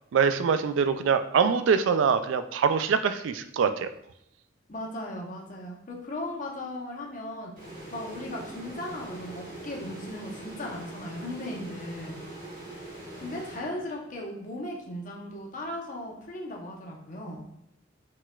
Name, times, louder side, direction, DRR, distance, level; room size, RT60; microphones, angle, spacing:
voice 1, 0.1-3.9, right 6 dB, 75° right, 10 dB, 0.3 m, -24 dB
voice 2, 4.7-7.5 7.9-12.2 13.2-17.4, left 1 dB, 45° left, 0 dB, 0.9 m, -37 dB
sound 1, 7.6-14.2, right 1 dB, 45° right, 1.3 m, -42 dB
4.4 x 4.2 x 2.3 m, 0.78 s
head